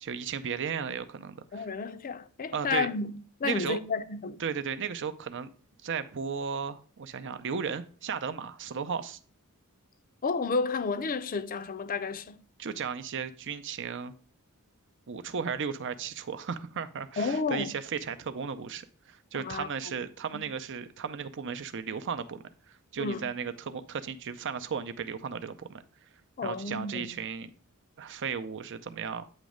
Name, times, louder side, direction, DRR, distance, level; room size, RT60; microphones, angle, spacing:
voice 1, 0.0-1.7 2.5-2.9 3.4-3.8 4.4-5.5 5.8-9.2 12.6-14.1 15.1-25.8 26.4-27.5 28.0-29.2, right 6 dB, 55° right, 0.6 m, -35 dB
voice 2, 1.5-4.4 10.2-12.4 17.2-17.7 19.3-20.0 20.3-20.4 23.0-23.3 26.4-27.2, left 4 dB, 40° left, 0.5 m, -32 dB
8.9 x 3.1 x 5.0 m
head